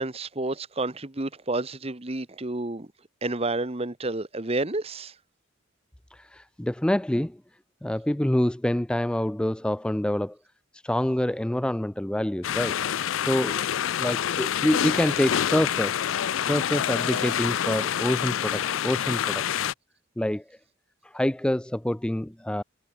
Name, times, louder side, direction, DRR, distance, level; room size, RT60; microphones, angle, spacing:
voice 1, 0.0-2.9 3.2-5.1, right 2 dB, 30° right, 1.2 m, -30 dB
voice 2, 6.1-7.4 7.8-10.4 10.7-12.8 13.2-19.6 20.2-20.6 21.0-22.6, left 1 dB, 5° left, 0.3 m, -27 dB
sound 1, 12.4-19.7, left 9 dB, 75° left, 0.4 m, -27 dB
head